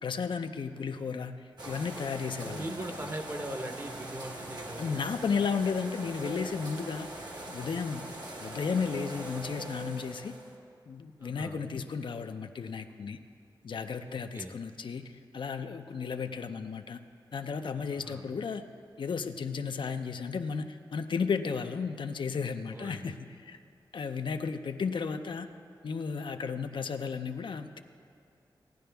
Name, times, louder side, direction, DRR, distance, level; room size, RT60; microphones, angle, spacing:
voice 1, 0.0-2.7 4.8-7.1 7.5-8.1 8.4-10.3 10.9-13.2 13.6-17.0 17.3-18.6 19.0-23.2 23.4-23.6 23.9-25.5 25.8-27.8, left 5 dB, 65° left, 8 dB, 0.5 m, -34 dB
sound 1, 1.6-10.6, right 1 dB, 55° right, 1.4 m, -42 dB
voice 2, 2.4-5.0 11.2-11.6 14.1-14.6 17.9-18.3 22.7-23.2, right 1 dB, 30° right, 5 dB, 0.9 m, -40 dB
17.0 x 10.0 x 3.4 m, 2.3 s
wide cardioid pair, 85°, 9 cm